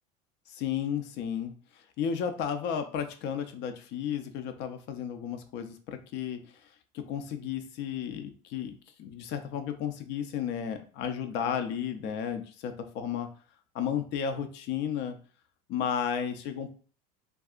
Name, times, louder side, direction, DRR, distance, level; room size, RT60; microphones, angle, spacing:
voice 1, 0.5-6.7 6.9-8.7 9.0-13.3 13.7-15.2 15.7-16.7, left 8 dB, 60° left, 6 dB, 0.6 m, -33 dB
3.5 x 2.6 x 2.4 m, 0.40 s
supercardioid pair, 100°, 20 cm